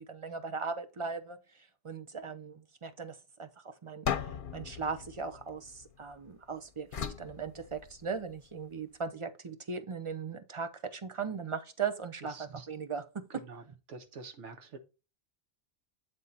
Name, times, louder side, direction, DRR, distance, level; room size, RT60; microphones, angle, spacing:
voice 1, 0.0-4.1 4.5-6.9 7.2-13.0 13.3-13.4, right 5 dB, 30° right, 0.7 m, -38 dB
sound 1, 4.1-6.3 6.9-8.3, left 8 dB, 55° left, 0.8 m, -38 dB
voice 2, 12.3-12.7 13.3-13.6 13.9-14.8, right 4 dB, 90° right, 1.4 m, -47 dB
8.2 x 3.6 x 4.1 m
omnidirectional pair, 1.2 m